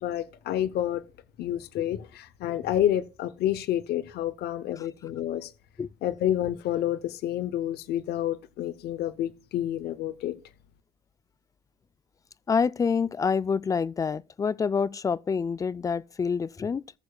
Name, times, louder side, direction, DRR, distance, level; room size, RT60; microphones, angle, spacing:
voice 1, 0.0-1.0 1.4-5.5 6.0-10.3, left 11 dB, 70° left, 0.8 m, -29 dB
voice 2, 12.5-16.8, left 5 dB, 20° left, 0.3 m, -27 dB
18.5 x 6.7 x 2.3 m
cardioid pair, 110°, 17 cm